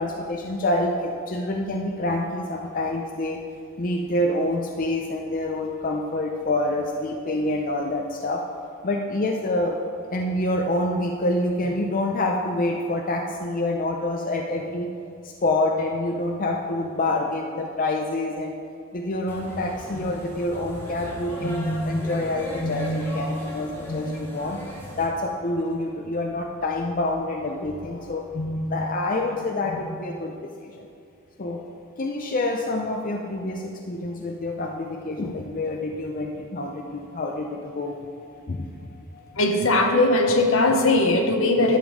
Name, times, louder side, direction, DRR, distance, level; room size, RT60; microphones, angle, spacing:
voice 1, 0.0-3.4 3.8-8.4 8.8-9.8 10.1-14.9 15.2-18.5 18.9-24.6 25.0-30.9 31.4-31.6 32.0-39.2, left 1 dB, 40° left, 2 dB, 0.5 m, -27 dB
sound 1, 19.3-25.1, left 1 dB, 10° left, 2.2 m, -37 dB
voice 2, 39.4-41.8, left 2 dB, 65° left, 4 dB, 1.0 m, -19 dB
11.5 x 7.2 x 4.9 m, 2.4 s
head